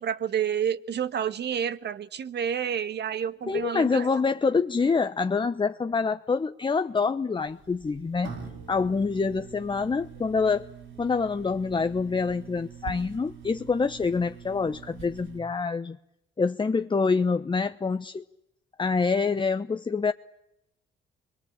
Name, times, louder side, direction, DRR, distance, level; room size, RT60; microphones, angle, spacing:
voice 1, 0.0-4.1, right 8 dB, 60° right, 1.5 m, -29 dB
voice 2, 3.5-8.3 8.7-10.7 11.0-16.0 16.4-18.2 18.8-20.1, left 4 dB, 25° left, 1.0 m, -26 dB
sound 1, 7.4-15.4, right 6 dB, 85° right, 6.2 m, -44 dB
27.0 x 22.5 x 8.8 m
cardioid pair, 90°, 20 cm